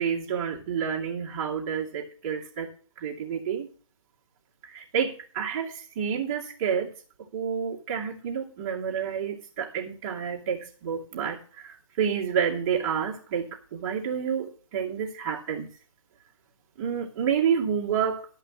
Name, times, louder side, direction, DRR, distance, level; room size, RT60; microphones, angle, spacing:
voice 1, 0.0-3.7 4.6-6.9 7.3-15.7 16.8-18.3, right 7 dB, 30° right, -2 dB, 2.4 m, -29 dB
12.5 x 5.7 x 7.1 m, 0.41 s
hypercardioid pair, 155°, 17 cm